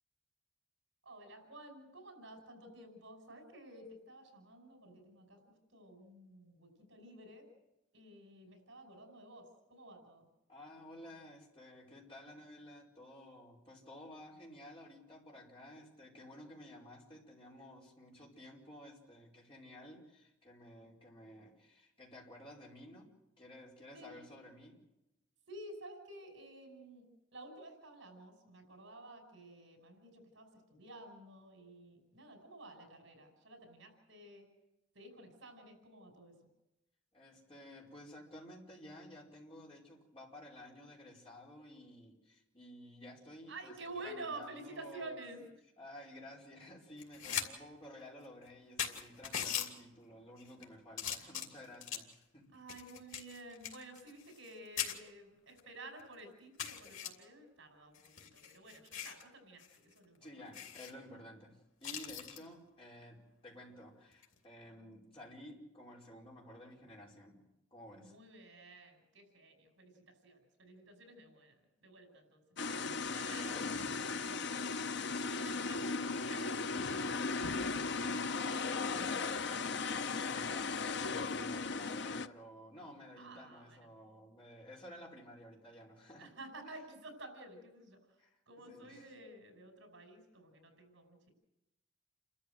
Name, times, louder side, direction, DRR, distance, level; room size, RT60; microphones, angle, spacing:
voice 1, 1.0-5.4 5.7-7.5 7.9-10.3 23.9-24.3 25.5-34.5 34.9-36.3 43.5-45.4 47.3-47.4 52.5-60.5 67.9-74.7 75.4-77.7 83.2-83.9 86.2-91.3, right 2 dB, 70° right, 4 dB, 5.7 m, -52 dB
voice 2, 10.5-23.1 23.4-24.8 37.1-43.7 44.0-45.1 45.8-52.5 60.2-68.1 72.7-73.8 78.3-86.3 86.6-86.8 88.2-88.3 88.7-89.0, left 1 dB, 30° left, -2 dB, 4.9 m, -53 dB
sound 1, 47.0-47.5 47.8-47.9 48.5-48.6 48.8-49.7 50.4-50.6 51.0-52.1 52.7-54.5 54.8-54.9 55.6-55.7 56.0-56.1 56.6-57.1 57.9-59.2 59.6-59.8 60.0-60.1 60.5-60.9 61.8-62.4 64.1-64.4, left 9 dB, 90° left, 3.0 m, -40 dB
sound 2, 72.6-82.3, left 4 dB, 60° left, 0.7 m, -37 dB
29.5 x 13.5 x 7.8 m, 0.91 s
head